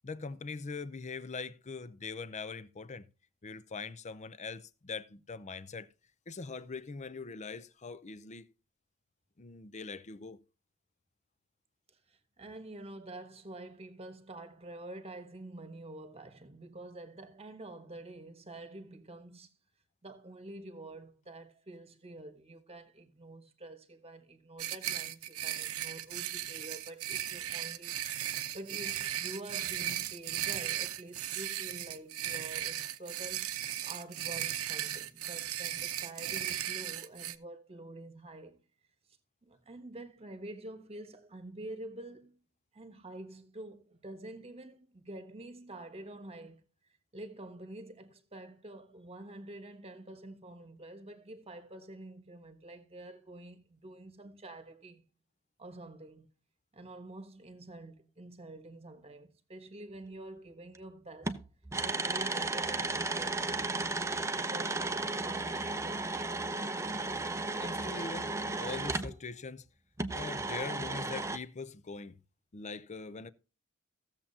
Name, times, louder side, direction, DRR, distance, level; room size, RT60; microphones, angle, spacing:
voice 1, 0.0-3.1 3.4-5.9 6.3-8.5 9.4-10.4 67.6-69.7 70.1-72.2 72.5-73.3, left 4 dB, 35° left, 0.6 m, -42 dB
voice 2, 11.9-19.5 20.0-28.0 28.3-33.6 33.8-38.6 39.4-42.4 42.7-46.6 47.1-55.0 55.6-56.3 56.7-61.3 61.8-64.0 64.3-66.3, right 2 dB, 30° right, 1.3 m, -47 dB
sound 1, 24.6-37.3, right 11 dB, 85° right, 0.7 m, -36 dB
sound 2, 60.7-60.8 61.2-69.2 70.0-71.4, right 3 dB, 15° right, 0.6 m, -34 dB
16.0 x 7.3 x 2.8 m
head